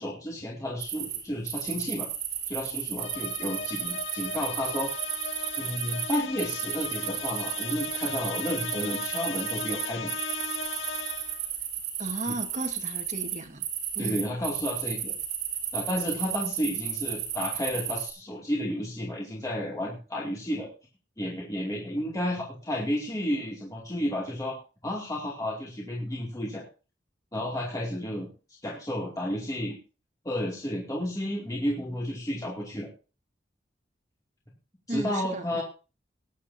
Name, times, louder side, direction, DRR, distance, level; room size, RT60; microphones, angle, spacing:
voice 1, 0.0-2.1 2.5-4.9 5.6-10.1 12.3-12.4 14.0-15.1 15.7-20.7 21.2-24.6 24.8-26.6 27.3-28.3 28.6-29.8 30.2-32.9 34.9-35.6, left 1 dB, 20° left, -3 dB, 2.5 m, -32 dB
sound 1, 0.8-1.2 1.4-18.1, right 9 dB, 60° right, 5.1 m, -33 dB
sound 2, 3.0-11.5, left 5 dB, 80° left, 0.8 m, -37 dB
voice 2, 12.0-13.7 14.0-14.3 34.9-35.6, right 1 dB, 40° right, 5 dB, 1.7 m, -35 dB
20.0 x 10.0 x 2.8 m, 0.33 s
head